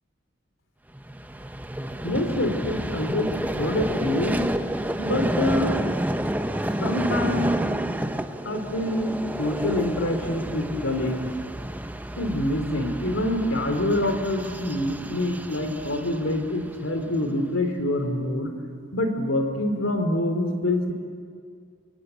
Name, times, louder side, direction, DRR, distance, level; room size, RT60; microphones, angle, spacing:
Vehicle, 0.9-17.3, right 1 dB, 10° right, 0.9 m, -30 dB
voice 1, 2.0-3.3 3.6-4.5 5.0-5.7 6.1-6.2 6.8-7.6 8.4-11.2 12.2-18.5 18.9-20.9, left 1 dB, 85° left, 6 dB, 3.1 m, -26 dB
28.5 x 24.0 x 8.2 m, 2.2 s
head